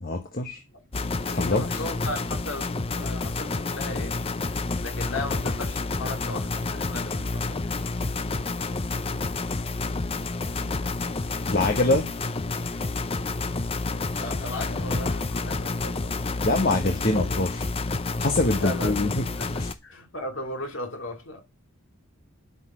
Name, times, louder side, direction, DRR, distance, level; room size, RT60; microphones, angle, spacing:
voice 1, 0.0-0.6 1.3-1.8 9.5-9.6 11.5-12.1 16.4-17.7 18.2-19.2 19.6-19.7, left 2 dB, 40° left, 1.2 m, -24 dB
sound 1, 0.9-19.7, left 3 dB, 25° left, 0.5 m, -29 dB
voice 2, 1.3-4.2 4.8-7.6 13.7-16.3 18.3-19.0 19.4-21.4, left 2 dB, 60° left, 2.7 m, -36 dB
10.0 x 8.2 x 6.1 m
head